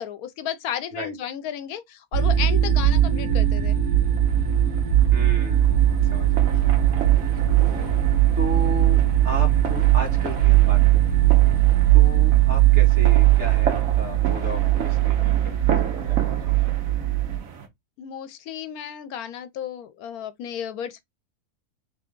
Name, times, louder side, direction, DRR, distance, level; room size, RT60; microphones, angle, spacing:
voice 1, 0.0-3.8 18.0-21.0, left 9 dB, 80° left, 1.1 m, -33 dB
sound 1, 2.1-17.4, right 13 dB, 90° right, 1.7 m, -19 dB
sound 2, 4.2-17.7, right 6 dB, 65° right, 1.3 m, -35 dB
voice 2, 5.1-7.6 8.4-11.1 11.9-16.6, equal, 50° right, 1.9 m, -35 dB
3.6 x 3.4 x 3.7 m
omnidirectional pair, 1.6 m